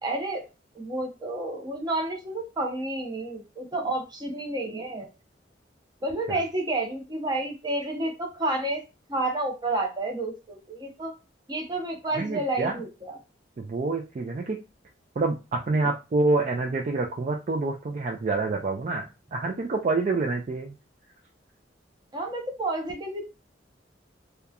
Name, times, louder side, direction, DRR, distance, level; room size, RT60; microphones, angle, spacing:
voice 1, 0.0-0.4 0.7-5.1 6.0-8.8 9.1-11.2 11.5-13.1 22.1-23.2, right 2 dB, 25° right, 1 dB, 0.7 m, -30 dB
voice 2, 12.1-12.8 13.6-14.6 15.2-19.0 19.3-20.7, right 3 dB, 40° right, 1 dB, 0.4 m, -27 dB
2.9 x 2.2 x 2.3 m, 0.28 s
head